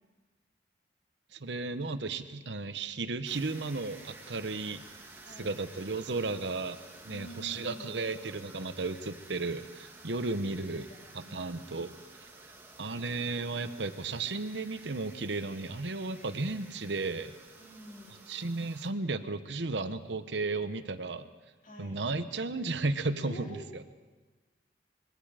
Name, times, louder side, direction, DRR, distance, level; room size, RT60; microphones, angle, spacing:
voice 1, 1.3-4.8 5.4-6.8 7.0-11.9 12.8-17.3 18.3-21.3 21.8-23.8, right 3 dB, 75° right, 10 dB, 1.0 m, -34 dB
sound 1, 3.2-18.9, right 2 dB, 15° right, 2.1 m, -52 dB
voice 2, 5.2-5.5 7.1-8.1 10.4-11.7 17.6-18.3 21.6-22.0 23.2-23.8, equal, 45° left, -1 dB, 2.7 m, -49 dB
25.5 x 22.0 x 5.0 m, 1.3 s
head